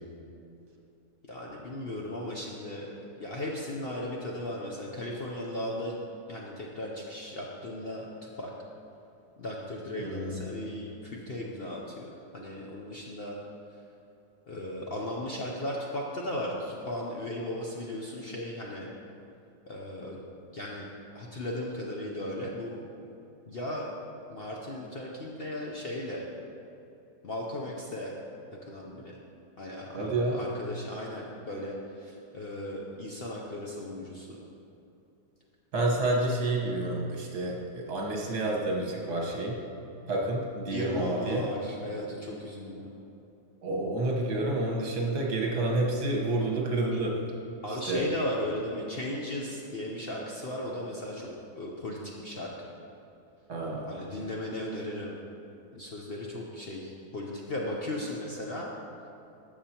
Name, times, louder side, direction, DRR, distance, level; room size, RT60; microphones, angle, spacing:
voice 1, 1.3-5.9 6.3-8.5 9.4-13.3 14.5-18.9 19.7-20.2 20.5-20.9 21.1-22.8 23.5-23.9 24.3-26.3 27.2-28.1 28.7-29.2 29.6-34.3 40.7-42.9 47.6-52.5 53.9-55.2 55.7-58.7, left 1 dB, 50° left, -2 dB, 0.7 m, -36 dB
voice 2, 10.0-10.4 29.9-30.4 35.7-39.6 40.1-41.5 43.6-47.2 47.7-48.1 53.5-53.9, right 2 dB, 75° right, -1 dB, 1.8 m, -29 dB
12.5 x 6.9 x 2.9 m, 2.8 s
omnidirectional pair, 1.7 m